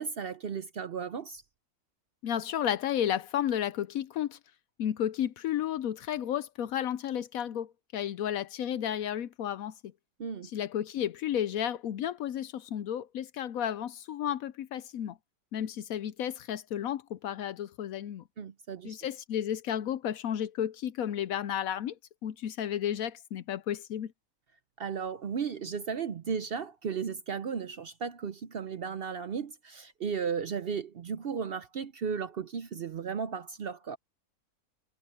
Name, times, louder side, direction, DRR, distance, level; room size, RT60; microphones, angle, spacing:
voice 1, 0.0-1.4 10.2-10.5 18.4-18.9 24.8-34.0, right 6 dB, 60° right, 0.6 m, -35 dB
voice 2, 2.2-4.4 4.8-9.7 10.5-15.2 15.5-18.2 18.8-22.0 22.2-24.1, left 10 dB, 70° left, 1.0 m, -32 dB
omnidirectional pair, 1.7 m